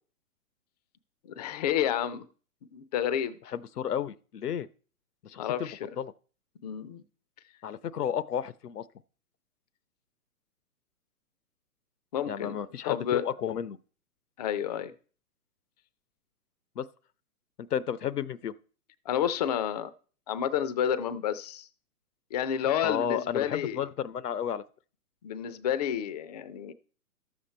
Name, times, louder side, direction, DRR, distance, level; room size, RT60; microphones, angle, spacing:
voice 1, 1.2-2.3 2.7-3.4 5.4-5.8 6.6-7.0 8.0-8.1 12.1-13.2 14.4-14.9 19.1-19.9 20.3-21.7 22.3-23.8 25.2-26.7, left 9 dB, 30° left, 0.5 m, -30 dB
voice 2, 3.5-4.7 5.2-5.7 6.0-6.1 7.6-8.9 12.3-13.8 16.8-16.9 17.6-18.5 22.8-24.6, left 9 dB, 80° left, 0.8 m, -32 dB
12.5 x 7.3 x 4.3 m
hypercardioid pair, 125°, 46 cm